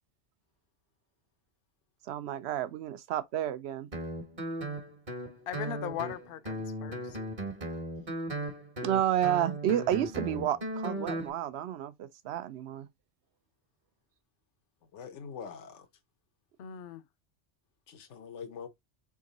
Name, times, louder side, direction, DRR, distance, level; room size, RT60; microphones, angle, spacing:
voice 1, 2.1-3.9 8.8-12.9, right 11 dB, 70° right, 0.9 m, -31 dB
Guitar, 3.9-11.3, right 1 dB, 40° right, 1.3 m, -37 dB
voice 2, 5.5-7.2 16.6-17.0, left 10 dB, 60° left, 0.7 m, -39 dB
voice 3, 14.9-15.9 17.9-18.7, left 6 dB, 90° left, 1.1 m, -43 dB
3.7 x 3.7 x 3.9 m
omnidirectional pair, 1.2 m